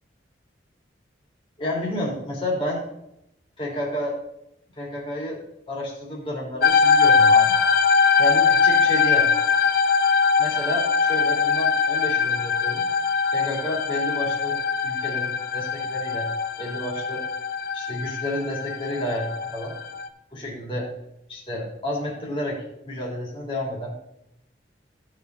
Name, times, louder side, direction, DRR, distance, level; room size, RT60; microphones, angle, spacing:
voice 1, 1.6-2.8 3.6-4.2 4.8-5.4 5.7-7.6 8.2-9.3 10.4-12.8 13.3-14.6 14.8-16.3 16.6-17.2 17.7-19.8 20.3-20.9 21.3-23.9, left 1 dB, 30° left, -4 dB, 3.1 m, -30 dB
sound 1, 6.6-20.1, left 5 dB, 55° left, 0.7 m, -21 dB
15.5 x 5.1 x 4.0 m, 0.82 s
head